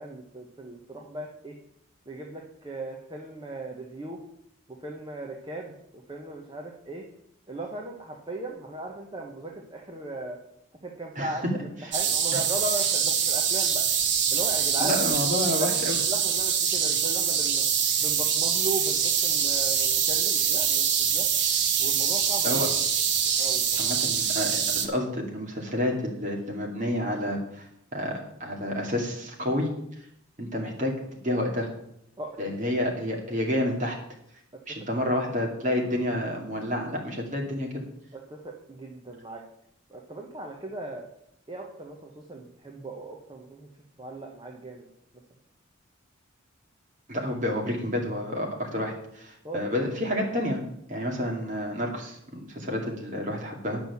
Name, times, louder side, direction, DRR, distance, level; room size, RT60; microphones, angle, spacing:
voice 1, 0.0-1.6 2.1-4.2 4.8-5.8 6.1-7.0 7.5-10.4 10.8-13.9 14.3-15.1 15.6-17.6 18.0-21.3 21.8-22.7 23.4-23.9 32.2-32.3 34.7-35.2 38.1-39.4 39.9-41.1 41.5-43.7 44.0-44.9 49.4-49.9, right 1 dB, 20° right, 0 dB, 1.0 m, -37 dB
sound 1, 11.9-24.9, right 7 dB, 55° right, 1.1 m, -24 dB
voice 2, 14.8-16.0 22.4-22.7 23.8-27.7 27.9-29.7 30.4-30.9 31.2-31.7 32.4-34.0 34.7-37.7 47.1-50.6 50.9-53.8, left 1 dB, 35° right, 0 dB, 2.4 m, -29 dB
10.0 x 6.1 x 7.1 m, 0.75 s
head